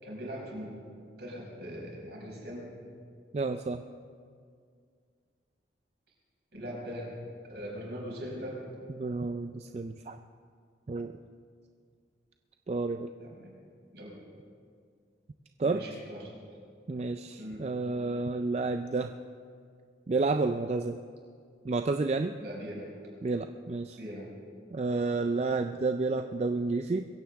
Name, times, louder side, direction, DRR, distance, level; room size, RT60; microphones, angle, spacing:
voice 1, 0.0-0.7 1.2-2.7 6.5-7.1 7.5-8.6 13.2-13.5 13.9-14.2 15.6-16.3 17.4-17.7 22.4-22.9 24.0-24.3, equal, 65° right, -3 dB, 5.4 m, -40 dB
voice 2, 3.3-3.8 9.0-10.2 10.9-11.1 12.7-13.1 15.6-15.8 16.9-19.1 20.1-21.0 21.6-22.4 23.2-24.0 24.7-27.1, right 3 dB, 35° right, 7 dB, 0.4 m, -30 dB
22.0 x 16.0 x 3.5 m, 2.1 s
head